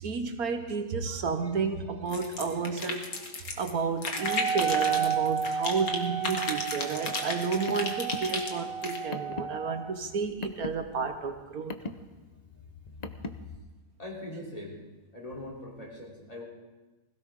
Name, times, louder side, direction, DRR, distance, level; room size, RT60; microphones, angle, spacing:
voice 1, 0.0-3.1 3.6-11.7, right 5 dB, 65° right, 6 dB, 1.5 m, -31 dB
sound 1, 2.1-3.7 4.0-6.0 6.2-9.0, left 3 dB, 65° left, 2.1 m, -34 dB
Wind instrument woodwind instrument, 4.2-9.9, right 8 dB, 90° right, 3.6 m, -32 dB
Car, 7.3-13.6, left 3 dB, 45° left, 0.5 m, -41 dB
voice 2, 14.0-14.8 15.1-16.4, left 1 dB, 20° left, -3 dB, 3.5 m, -41 dB
20.5 x 16.5 x 3.7 m, 1.2 s
omnidirectional pair, 1.7 m